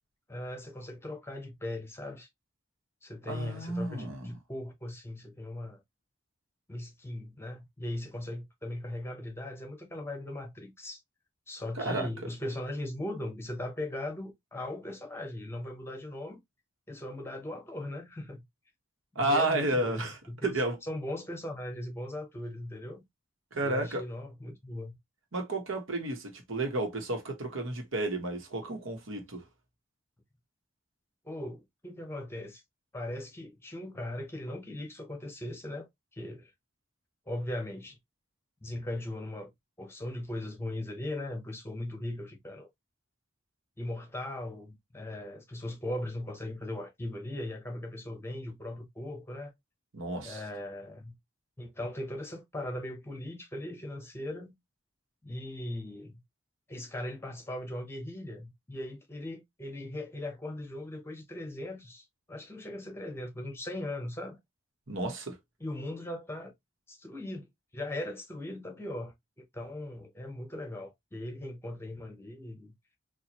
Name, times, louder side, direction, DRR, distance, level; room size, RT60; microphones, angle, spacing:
voice 1, 0.3-2.3 3.0-5.8 6.7-11.0 11.5-16.4 16.9-18.4 19.1-23.0 23.6-25.0 31.2-32.6 32.9-35.9 36.2-36.5 37.3-38.0 38.6-39.5 39.8-42.7 43.8-49.5 50.2-51.2 51.6-54.5 55.2-56.2 56.7-64.4 65.6-66.5 66.9-72.7, left 1 dB, 15° left, 0.8 m, -39 dB
voice 2, 3.3-4.4 11.8-12.1 19.1-20.8 23.5-24.0 25.3-29.4 49.9-50.4 64.9-65.4, right 2 dB, 90° right, 1.2 m, -32 dB
4.3 x 2.5 x 2.9 m
head